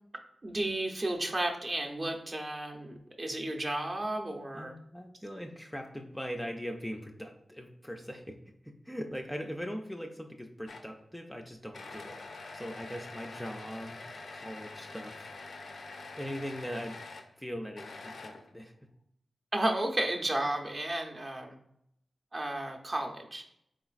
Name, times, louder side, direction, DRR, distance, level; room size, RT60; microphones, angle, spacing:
voice 1, 0.4-4.7 19.5-21.6 22.3-23.4, right 1 dB, 35° right, 2 dB, 0.6 m, -33 dB
voice 2, 4.6-8.4 8.9-12.2 12.5-14.0 14.3-15.3 16.1-17.0 17.4-18.7, equal, 5° left, 3 dB, 0.4 m, -40 dB
sound 1, 10.7-11.0 11.7-17.3 17.8-18.6, left 3 dB, 75° left, 0.4 m, -45 dB
4.0 x 3.8 x 2.4 m, 0.74 s
wide cardioid pair, 105°, 0 cm